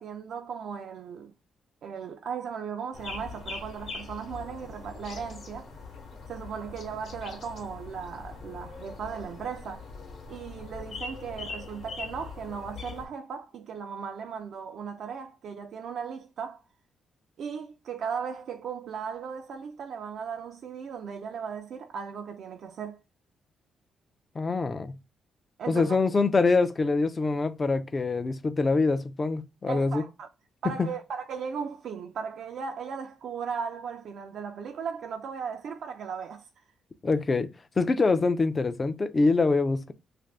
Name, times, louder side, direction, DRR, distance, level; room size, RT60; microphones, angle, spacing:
voice 1, 0.0-1.3 1.8-5.7 6.3-9.9 10.3-16.6 17.4-23.0 25.6-26.0 29.7-30.3 30.6-36.5, right 6 dB, 65° right, 0.3 m, -37 dB
sound 1, 2.9-13.1, left 4 dB, 60° left, 0.9 m, -42 dB
voice 2, 24.4-24.9 25.7-30.0 30.8-30.9 37.0-37.5 37.8-39.9, left 3 dB, 25° left, 0.3 m, -25 dB
2.6 x 2.5 x 3.2 m
cardioid pair, 130°, 0 cm